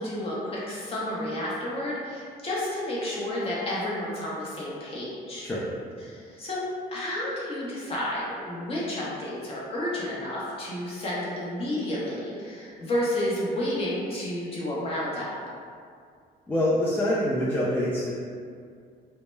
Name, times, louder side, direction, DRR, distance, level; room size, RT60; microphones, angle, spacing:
voice 1, 0.0-5.5 6.0-6.6 6.9-15.3, left 1 dB, 35° left, -6 dB, 0.7 m, -31 dB
voice 2, 16.5-18.1, left 1 dB, 10° left, -8 dB, 0.3 m, -25 dB
2.1 x 2.0 x 3.1 m, 2.2 s
cardioid pair, 110°, 17 cm